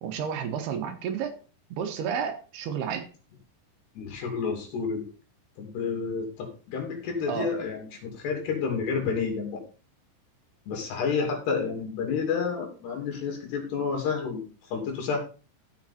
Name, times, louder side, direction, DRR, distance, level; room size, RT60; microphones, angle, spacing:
voice 1, 0.0-1.4 1.7-3.1 7.3-7.5, right 7 dB, 75° right, 7 dB, 3.1 m, -31 dB
voice 2, 4.0-5.0 5.6-9.6 10.7-15.2, left 5 dB, 75° left, 2 dB, 4.8 m, -30 dB
15.0 x 5.5 x 4.2 m, 0.36 s
omnidirectional pair, 4.8 m